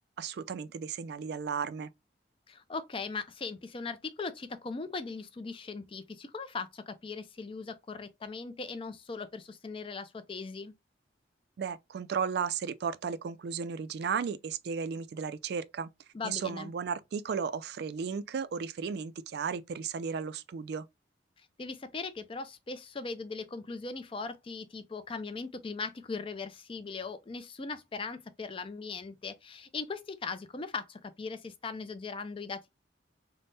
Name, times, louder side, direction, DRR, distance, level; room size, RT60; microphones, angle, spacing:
voice 1, 0.2-1.9 11.6-15.9 16.2-20.9, right 6 dB, 60° right, 0.3 m, -34 dB
voice 2, 2.5-10.7 16.1-16.7 21.4-32.7, left 4 dB, 30° left, 0.4 m, -39 dB
3.4 x 2.1 x 3.9 m
head